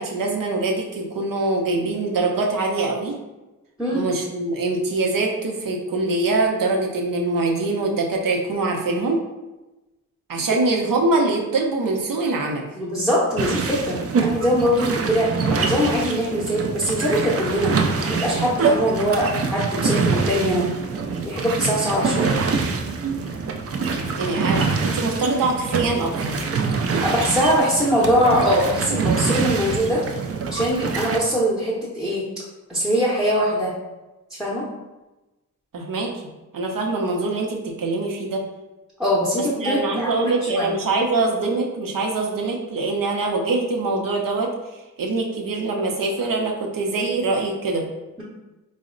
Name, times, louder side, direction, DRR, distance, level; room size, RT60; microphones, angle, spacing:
voice 1, 0.0-3.1 3.9-9.2 10.3-12.7 24.2-26.4 35.7-36.1 36.5-38.4 39.3-44.5 45.0-47.9, right 3 dB, 75° right, 1 dB, 0.7 m, -23 dB
voice 2, 12.7-17.7 18.1-20.7 21.2-22.3 27.0-30.0 30.5-32.3 32.7-33.7 34.3-34.7 39.0-40.7, equal, ahead, -8 dB, 0.8 m, -22 dB
sound 1, 13.4-31.2, right 4 dB, 45° right, 0.4 m, -25 dB
4.0 x 2.1 x 3.7 m, 1.1 s
wide cardioid pair, 85°, 33 cm